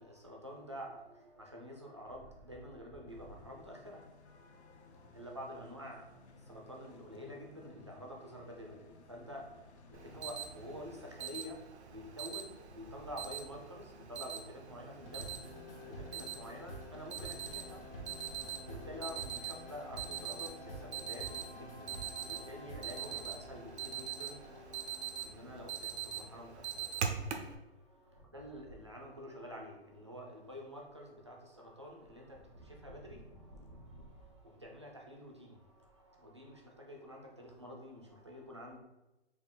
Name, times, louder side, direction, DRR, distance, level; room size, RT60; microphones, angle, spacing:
voice 1, 0.0-38.8, equal, 30° right, 0.4 m, -49 dB
sound 1, 3.1-11.2, left 4 dB, 80° left, 0.7 m, -59 dB
Alarm, 9.9-27.5, right 8 dB, 80° right, 0.7 m, -43 dB
sound 2, 15.0-25.4, left 1 dB, 55° left, 1.2 m, -49 dB
4.3 x 2.4 x 3.7 m
hypercardioid pair, 180°, 33 cm